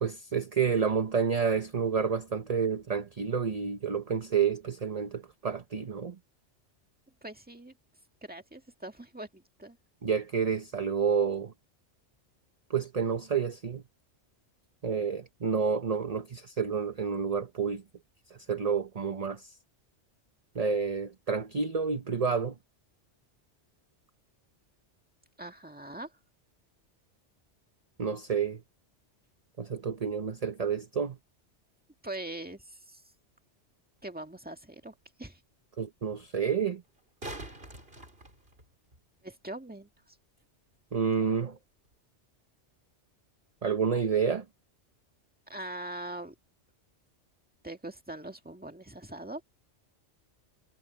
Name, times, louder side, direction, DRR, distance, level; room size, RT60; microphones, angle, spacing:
voice 1, 0.0-6.2 10.0-11.5 12.7-13.8 14.8-17.8 18.3-19.6 20.5-22.6 28.0-28.6 29.6-31.2 35.8-36.8 40.9-41.6 43.6-44.4, right 6 dB, 35° right, 0.9 m, -29 dB
voice 2, 7.2-7.7 8.2-9.8 25.4-26.1 32.0-33.0 34.0-35.4 39.2-39.9 45.5-46.4 47.6-49.4, right 1 dB, 10° right, 1.8 m, -42 dB
sound 1, 34.0-34.1 36.8-39.0 41.9-42.0, right 1 dB, 55° right, 5.2 m, -44 dB
omnidirectional pair, 1.2 m